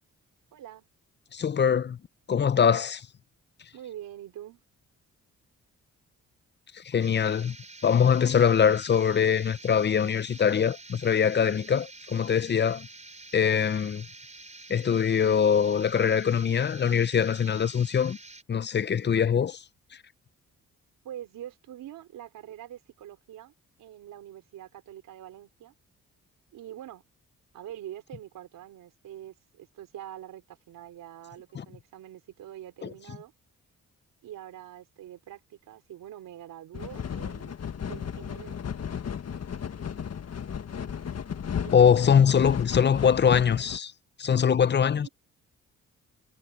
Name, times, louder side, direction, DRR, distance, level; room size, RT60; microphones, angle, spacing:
voice 1, 0.5-0.9 3.7-4.6 21.0-23.5 23.8-25.7 26.5-27.0 27.5-33.3 34.2-37.5 37.8-39.0 41.6-41.9 45.0-45.1, right 11 dB, 90° right, 4.0 m, -44 dB
voice 2, 1.3-2.0 2.3-3.1 6.7-7.6 7.8-12.9 13.3-14.1 14.7-18.2 18.5-19.6 31.6-31.7 32.8-32.9 41.7-43.9 44.2-45.1, left 7 dB, 35° left, 0.6 m, -23 dB
sound 1, 7.0-18.4, right 3 dB, 20° right, 4.9 m, -48 dB
sound 2, 36.7-43.8, left 7 dB, 50° left, 1.6 m, -35 dB
cardioid pair, 70°, 32 cm